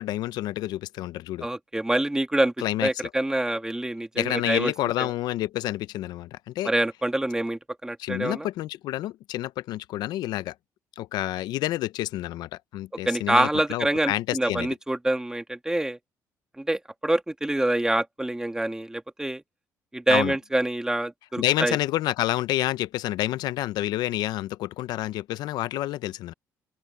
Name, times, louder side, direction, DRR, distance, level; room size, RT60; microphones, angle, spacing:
voice 1, 0.0-1.5 2.6-3.1 4.2-6.7 8.0-10.5 11.0-14.7 20.1-20.4 21.4-26.3, left 15 dB, 75° left, 0.6 m, -29 dB
voice 2, 1.4-2.5 2.8-4.7 5.0-5.1 6.7-8.5 13.1-16.0 16.6-19.4 19.9-21.8, right 1 dB, 10° right, 1.9 m, -26 dB
open air
cardioid pair, 90°, 7 cm